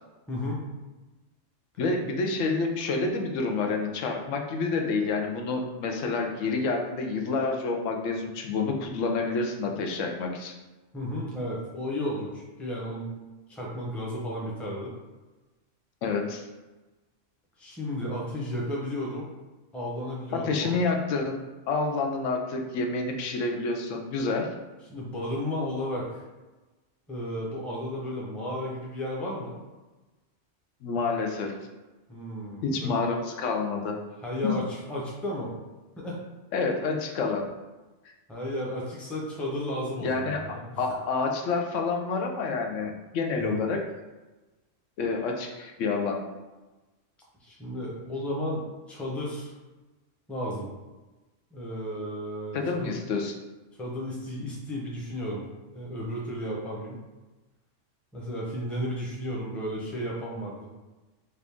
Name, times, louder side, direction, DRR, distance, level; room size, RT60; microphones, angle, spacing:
voice 1, 0.3-0.6 10.9-13.2 13.5-14.9 17.6-19.3 19.7-20.7 24.9-26.2 27.1-29.6 32.1-32.9 34.2-35.5 36.0-36.2 38.3-40.8 43.4-43.6 47.4-49.5 50.3-50.7 51.5-53.0 53.8-55.5 55.7-57.0 58.1-60.6, equal, ahead, -4 dB, 0.6 m, -33 dB
voice 2, 1.8-10.6 16.0-16.4 20.3-21.4 21.7-24.5 30.8-31.6 32.6-34.0 34.4-34.5 36.5-37.4 40.0-40.5 40.8-43.8 45.0-46.2 52.5-53.3, left 4 dB, 85° left, 2 dB, 1.0 m, -28 dB
4.4 x 2.5 x 3.4 m, 1.1 s
omnidirectional pair, 1.3 m